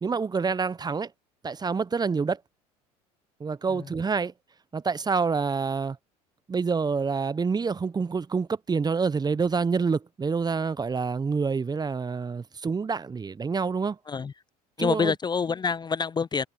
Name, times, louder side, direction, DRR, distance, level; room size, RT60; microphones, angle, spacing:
voice 1, 0.0-1.1 1.4-2.4 3.4-4.3 4.7-6.0 6.5-14.0 14.8-15.1, right 5 dB, 20° right, 1.0 m, -27 dB
voice 2, 14.8-16.5, left 5 dB, 20° left, 0.7 m, -27 dB
hypercardioid pair, 70°, 20 cm